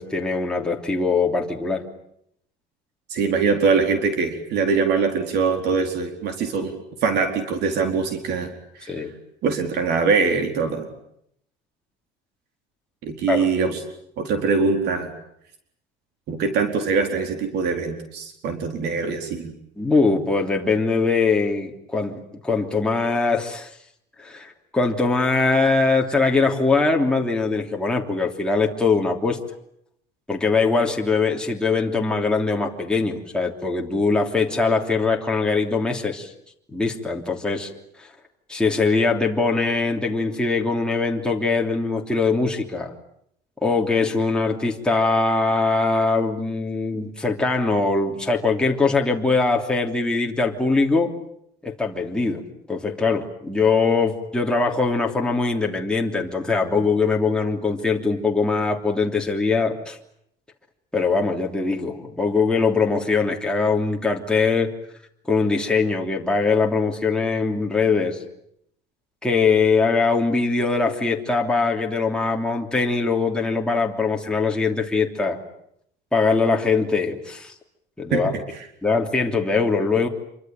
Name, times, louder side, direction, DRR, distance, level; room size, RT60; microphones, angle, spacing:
voice 1, 0.0-1.8 8.9-9.1 13.3-13.5 19.8-23.7 24.2-29.4 30.3-36.3 36.7-37.7 38.0-38.1 38.5-42.9 43.6-51.1 51.6-60.0 60.9-64.7 65.3-68.2 69.2-75.4 76.1-77.5 78.0-78.3 78.8-80.1, left 4 dB, 5° left, 0 dB, 3.1 m, -22 dB
voice 2, 3.1-6.7 7.0-9.0 9.4-10.9 13.0-13.8 14.2-15.1 16.3-19.5 78.1-78.2 78.5-78.7, right 5 dB, 60° right, 5 dB, 4.4 m, -23 dB
27.0 x 24.0 x 9.1 m, 0.73 s
cardioid pair, 150°, 19 cm